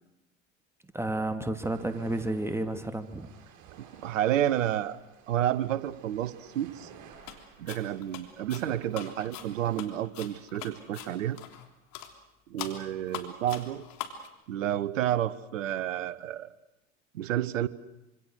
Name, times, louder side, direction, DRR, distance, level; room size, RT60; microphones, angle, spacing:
voice 1, 0.9-3.3, right 1 dB, 5° right, 7 dB, 2.5 m, -31 dB
sound 1, 1.6-9.8, right 7 dB, 50° right, 7.4 m, -54 dB
voice 2, 3.8-5.0 5.3-6.9 7.6-11.4 12.5-13.8 14.5-16.5 17.1-17.7, right 11 dB, 80° right, 15 dB, 1.2 m, -30 dB
sound 2, 7.2-7.4 7.7-11.7 11.9-12.1 12.6-14.3, left 11 dB, 60° left, 3.5 m, -42 dB
26.5 x 26.5 x 6.4 m, 0.94 s
hypercardioid pair, 80°, 38 cm